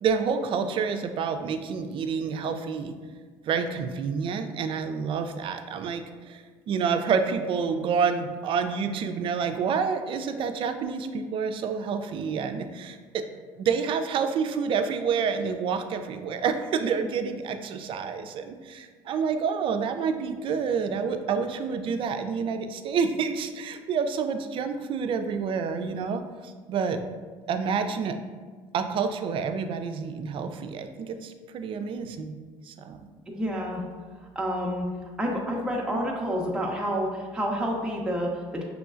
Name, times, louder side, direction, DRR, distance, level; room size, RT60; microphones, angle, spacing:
voice 1, 0.0-3.0 3.5-13.2 13.6-27.0 27.5-28.2 28.7-32.4 32.7-33.0, right 6 dB, 50° right, 8 dB, 0.4 m, -28 dB
voice 2, 33.3-33.8 34.3-34.9 35.2-38.6, equal, 5° right, -2 dB, 0.6 m, -29 dB
5.0 x 3.1 x 2.4 m, 1.5 s
supercardioid pair, 95°, 11 cm